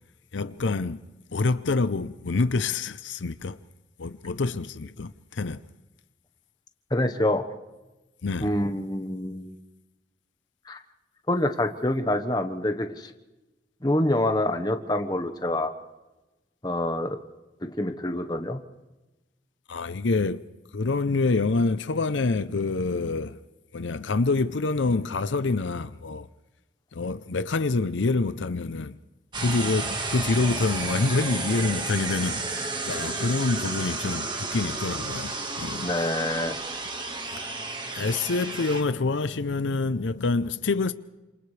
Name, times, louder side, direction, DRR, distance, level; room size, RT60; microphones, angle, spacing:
voice 1, 0.3-1.0 1.3-3.6 4.0-5.6 8.2-8.5 19.7-20.4 20.7-23.4 23.7-26.3 26.9-28.9 29.4-35.9 37.3-37.4 37.9-40.9, left 3 dB, 80° left, 0.6 m, -26 dB
voice 2, 6.9-7.4 8.4-9.5 10.7-10.8 11.3-13.1 13.8-15.7 16.6-17.2 17.6-18.6 35.8-36.6, left 1 dB, 20° left, 1.2 m, -26 dB
sound 1, 29.3-38.8, right 3 dB, 25° right, 1.6 m, -32 dB
29.0 x 27.5 x 3.4 m
head